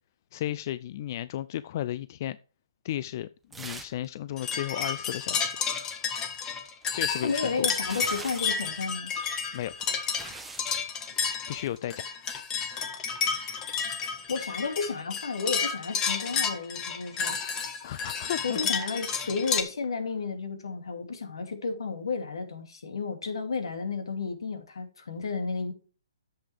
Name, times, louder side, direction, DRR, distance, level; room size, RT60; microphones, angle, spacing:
voice 1, 0.3-2.4 2.8-3.3 3.6-5.6 6.9-7.7 9.5-9.7 11.5-12.0 17.8-18.7, left 12 dB, 45° left, 0.4 m, -34 dB
sound 1, 3.5-4.1 4.3-4.4 6.8-8.6 9.5-10.7 11.5-11.8, right 3 dB, 5° right, 1.1 m, -43 dB
sound 2, 4.4-19.6, left 6 dB, 20° left, 1.4 m, -31 dB
voice 2, 7.2-9.1 14.3-17.4 18.4-25.7, left 4 dB, 80° left, 2.8 m, -32 dB
10.0 x 7.8 x 3.4 m
hypercardioid pair, 145°, 3 cm